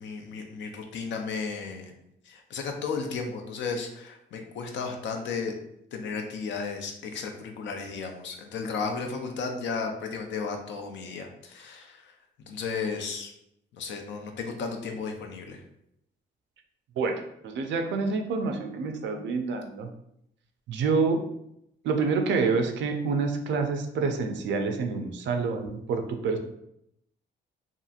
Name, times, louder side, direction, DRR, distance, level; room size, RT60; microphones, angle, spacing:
voice 1, 0.0-1.9 2.3-5.5 5.9-12.1 12.4-13.3 13.7-15.6, left 5 dB, 65° left, 3 dB, 0.5 m, -34 dB
voice 2, 17.0-19.9 20.7-21.2 21.8-26.4, right 4 dB, 65° right, 5 dB, 0.4 m, -27 dB
2.8 x 2.5 x 2.4 m, 0.77 s
cardioid pair, 90°, 20 cm